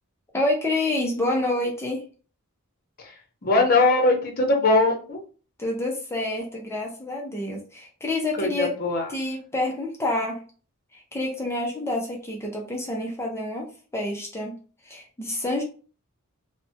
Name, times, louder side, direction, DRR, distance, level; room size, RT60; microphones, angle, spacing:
voice 1, 0.3-2.0 5.6-8.7 9.1-10.4 10.9-13.7 13.9-14.6 14.9-15.6, left 2 dB, 10° left, -1 dB, 0.5 m, -28 dB
voice 2, 3.4-5.2 8.4-9.1, left 2 dB, 40° left, 2 dB, 0.8 m, -21 dB
3.2 x 2.1 x 2.7 m, 0.38 s
head